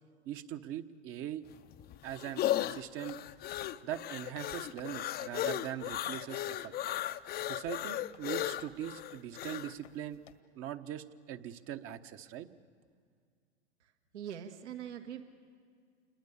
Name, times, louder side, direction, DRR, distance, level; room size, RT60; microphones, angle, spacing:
voice 1, 0.2-1.4 2.0-3.2 3.8-6.7 7.4-10.2 10.5-12.5, right 11 dB, 40° right, 9 dB, 1.2 m, -41 dB
sound 1, 1.5-9.7, left 13 dB, 25° left, 0.7 m, -36 dB
sound 2, 2.7-10.3, left 9 dB, 85° left, 1.8 m, -56 dB
voice 2, 13.8-15.2, right 9 dB, 75° right, 6 dB, 1.9 m, -43 dB
28.5 x 22.5 x 7.1 m, 2.1 s
hypercardioid pair, 105°, 35 cm